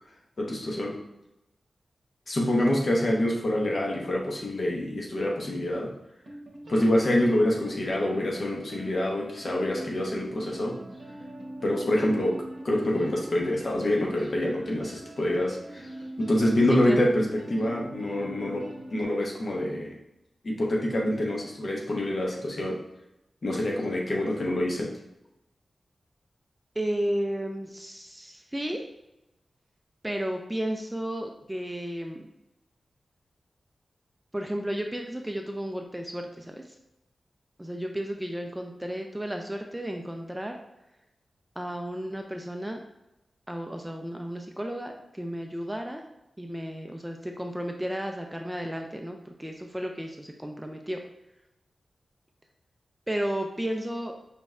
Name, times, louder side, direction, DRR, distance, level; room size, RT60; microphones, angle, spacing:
voice 1, 0.4-1.0 2.3-5.9 6.7-10.8 11.6-20.0 20.4-22.8 23.4-24.9, left 1 dB, 45° left, -1 dB, 0.8 m, -26 dB
sound 1, 6.2-19.0, right 1 dB, 75° right, 0.8 m, -43 dB
voice 2, 26.8-28.8 30.0-32.3 34.3-36.6 37.6-40.6 41.6-42.8 43.5-46.0 46.4-51.0 53.1-54.1, equal, 10° right, 3 dB, 0.3 m, -33 dB
5.1 x 3.2 x 2.3 m, 0.91 s
wide cardioid pair, 140°, 0 cm